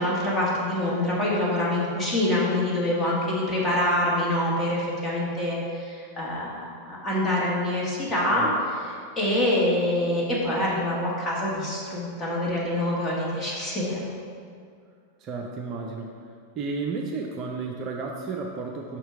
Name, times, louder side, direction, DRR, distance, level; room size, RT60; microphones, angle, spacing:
voice 1, 0.0-8.5 9.2-14.0, left 1 dB, 10° left, -6 dB, 1.7 m, -25 dB
voice 2, 15.2-16.1 16.6-19.0, right 4 dB, 35° right, 1 dB, 0.5 m, -32 dB
5.8 x 4.4 x 4.7 m, 2.2 s
figure-of-eight pair, 90°, 0 cm